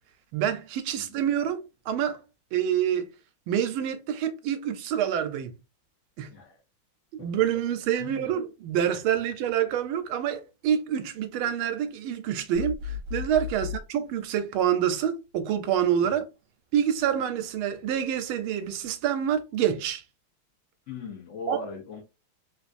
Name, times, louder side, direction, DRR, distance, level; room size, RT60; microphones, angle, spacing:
voice 1, 0.3-2.2 2.5-3.0 3.5-5.5 6.2-6.3 7.1-16.2 16.7-20.0 21.5-21.6, right 9 dB, 80° right, 1.4 m, -27 dB
voice 2, 6.3-6.6 7.2-7.3 8.0-8.3 13.6-13.7 16.0-16.2 20.9-22.0, left 5 dB, 60° left, 0.8 m, -40 dB
sound 1, 12.5-13.8, left 7 dB, 65° right, 1.4 m, -34 dB
3.6 x 2.5 x 2.4 m
omnidirectional pair, 2.3 m